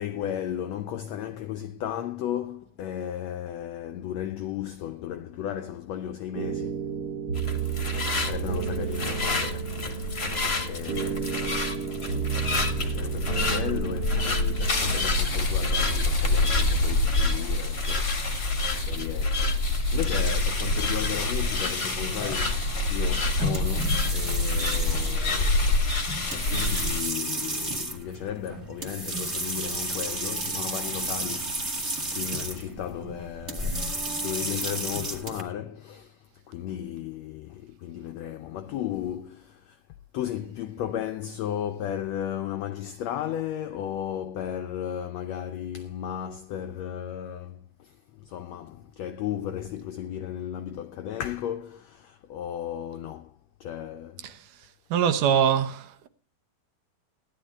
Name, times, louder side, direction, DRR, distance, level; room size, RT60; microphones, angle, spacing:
voice 1, 0.0-6.9 8.1-11.7 12.1-25.8 26.3-39.8 40.1-53.3 53.6-54.3, left 10 dB, 85° left, 1.5 m, -35 dB
sound 1, 6.3-15.1, right 7 dB, 40° right, 2.1 m, -32 dB
sound 2, 7.3-27.0, left 2 dB, 30° left, 1.2 m, -27 dB
sound 3, 20.6-35.4, right 1 dB, 25° right, 1.8 m, -33 dB
voice 2, 54.9-56.1, right 8 dB, 70° right, 2.4 m, -23 dB
15.5 x 11.5 x 3.6 m
omnidirectional pair, 4.0 m